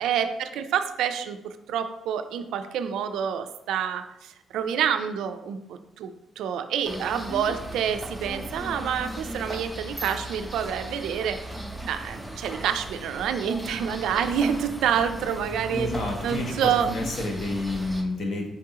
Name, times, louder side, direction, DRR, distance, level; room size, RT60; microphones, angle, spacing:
voice 1, 0.0-11.4 11.9-15.9 16.2-16.9, right 8 dB, 85° right, 9 dB, 0.3 m, -28 dB
sound 1, 6.8-18.0, right 1 dB, ahead, 0.4 m, -37 dB
voice 2, 15.7-18.5, left 2 dB, 45° left, 2 dB, 0.7 m, -30 dB
4.6 x 3.6 x 2.8 m, 0.89 s
cardioid pair, 175°, 0 cm